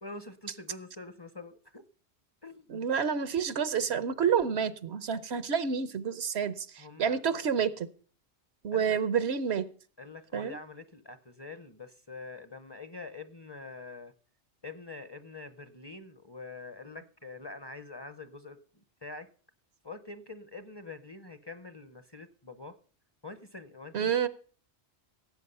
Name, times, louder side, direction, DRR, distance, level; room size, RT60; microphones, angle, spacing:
voice 1, 0.0-1.8 2.4-2.7 6.8-7.2 8.7-9.0 10.0-14.1 14.6-19.3 19.8-22.8 23.2-24.1, left 3 dB, 25° left, 10 dB, 0.8 m, -45 dB
voice 2, 2.7-7.9 8.6-9.7 10.3-10.6 23.9-24.3, right 7 dB, 70° right, 15 dB, 1.1 m, -29 dB
16.5 x 8.3 x 5.5 m, 0.42 s
omnidirectional pair, 1.1 m